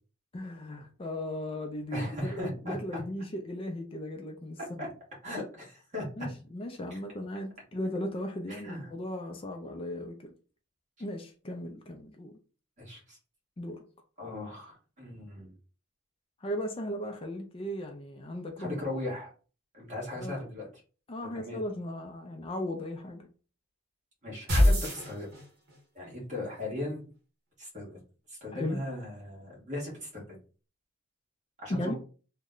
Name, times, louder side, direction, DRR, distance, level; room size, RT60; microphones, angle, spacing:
voice 1, 0.3-4.9 6.2-10.3 11.0-12.4 13.6-13.8 16.4-18.8 20.1-20.4 21.1-23.3 28.5-28.8 31.7-31.9, left 1 dB, 25° left, 0.4 m, -37 dB
voice 2, 1.9-3.0 4.8-4.9 5.2-6.0 6.9-7.0 8.5-8.9 12.8-13.2 14.2-15.5 18.6-19.3 19.7-20.7 21.3-21.6 24.2-25.3 25.9-27.1 27.6-28.0 28.3-30.3 31.6-31.9, left 1 dB, 35° right, 1.5 m, -38 dB
sound 1, 24.5-25.8, left 1 dB, 50° right, 1.4 m, -24 dB
3.1 x 2.1 x 3.7 m
head